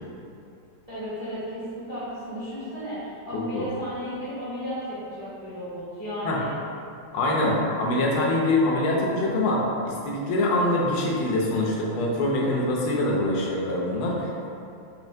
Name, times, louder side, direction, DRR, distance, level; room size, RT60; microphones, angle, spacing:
voice 1, 0.9-6.5, equal, 70° right, -11 dB, 0.4 m, -34 dB
voice 2, 3.3-3.7 6.2-6.4 7.1-14.5, left 1 dB, 80° left, -3 dB, 1.4 m, -24 dB
4.2 x 2.1 x 2.6 m, 2.5 s
omnidirectional pair, 2.3 m